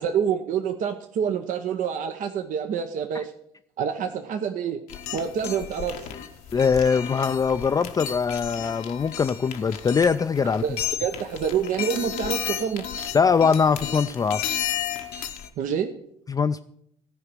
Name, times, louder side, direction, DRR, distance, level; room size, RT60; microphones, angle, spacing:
voice 1, 0.0-3.3 3.8-4.8 5.1-6.1 10.6-13.0 15.6-15.9, right 7 dB, 60° right, 6 dB, 0.7 m, -27 dB
Rolling baoding balls, 4.9-15.5, left 10 dB, 75° left, 1.0 m, -33 dB
voice 2, 6.5-10.6 13.1-14.6 16.3-16.6, left 6 dB, 25° left, 8 dB, 0.4 m, -22 dB
14.0 x 5.0 x 6.2 m, 0.72 s
supercardioid pair, 65°, 15 cm